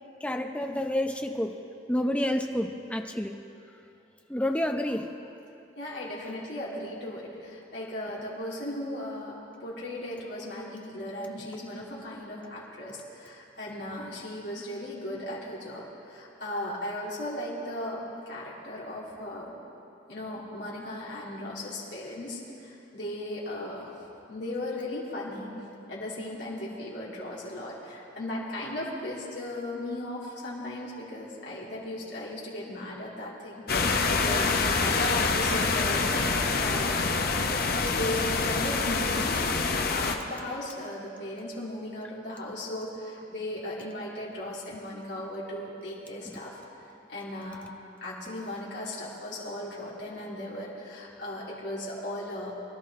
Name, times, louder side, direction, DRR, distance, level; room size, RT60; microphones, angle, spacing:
voice 1, 0.2-1.6 1.9-3.4 4.3-5.1 46.2-46.4, left 1 dB, 5° left, 4 dB, 0.6 m, -29 dB
voice 2, 5.8-19.5 20.1-24.0 24.3-25.6 25.9-37.0 37.9-39.4 39.9-46.6 47.1-47.7 48.0-52.5, left 1 dB, 70° left, -6 dB, 3.1 m, -37 dB
sound 1, 33.7-40.2, left 4 dB, 55° left, 0.9 m, -26 dB
23.0 x 11.5 x 3.7 m, 2.7 s
head